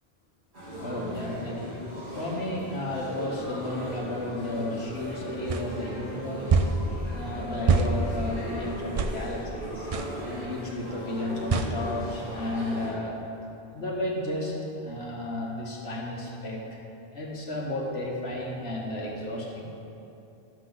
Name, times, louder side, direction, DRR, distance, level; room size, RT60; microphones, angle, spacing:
sound 1, 0.5-12.9, equal, 90° right, 2.3 m, -38 dB
voice 1, 0.8-1.8 2.1-6.6 7.1-9.9 10.4-13.2 13.7-14.6 14.8-16.6 17.1-19.7, left 1 dB, 75° left, -3 dB, 1.7 m, -33 dB
sound 2, 5.5-5.6 6.5-6.8 7.7-7.9 9.0-9.2 9.9-10.1 11.5-11.7, right 5 dB, 50° right, 0.4 m, -23 dB
12.0 x 7.3 x 3.8 m, 2.7 s
omnidirectional pair, 1.1 m